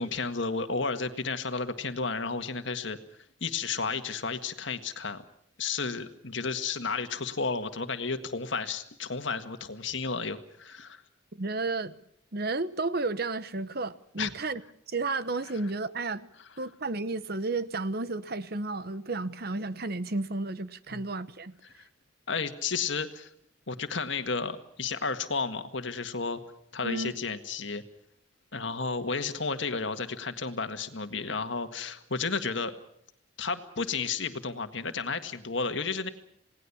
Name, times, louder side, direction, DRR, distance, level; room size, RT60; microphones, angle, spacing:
voice 1, 0.0-3.0 3.4-5.2 5.6-11.0 14.2-14.3 20.9-21.0 22.3-23.3 23.7-26.4 26.7-27.8 28.5-32.7 33.4-36.1, left 4 dB, 65° left, 1.8 m, -32 dB
voice 2, 11.3-12.0 12.3-14.6 14.9-16.3 16.6-21.6 26.8-27.2, right 3 dB, 50° right, 1.0 m, -32 dB
28.5 x 18.5 x 7.2 m
head